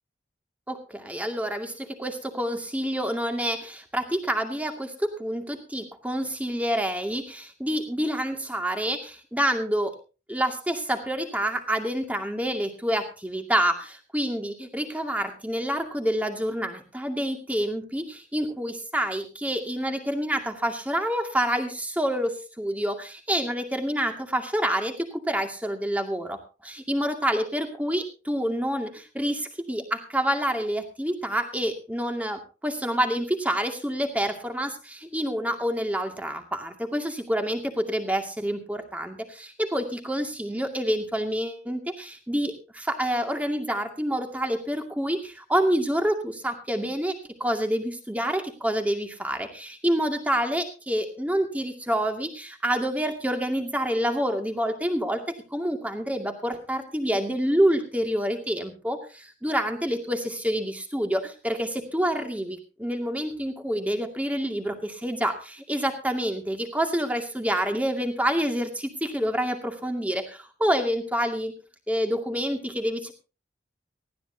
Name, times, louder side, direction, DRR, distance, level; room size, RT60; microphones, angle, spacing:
voice 1, 0.7-9.9 10.3-71.5 71.9-73.1, equal, 10° right, 5 dB, 2.3 m, -28 dB
19.0 x 15.5 x 2.8 m, 0.32 s
head